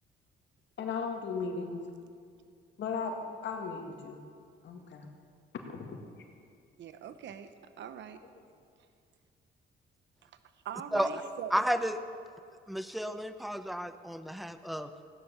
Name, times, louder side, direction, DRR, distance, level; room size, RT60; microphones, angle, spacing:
voice 1, 0.8-1.8 2.8-3.1 3.4-4.2 4.6-5.1 5.7-6.0, left 5 dB, 65° left, 3 dB, 2.0 m, -36 dB
voice 2, 6.8-7.5 7.8-8.2 10.2-10.3 10.6-11.5, right 9 dB, 65° right, 11 dB, 0.9 m, -42 dB
voice 3, 11.5-12.0 12.7-14.9, equal, ahead, 10 dB, 0.8 m, -32 dB
16.0 x 10.0 x 6.9 m, 2.2 s
cardioid pair, 90°, 20 cm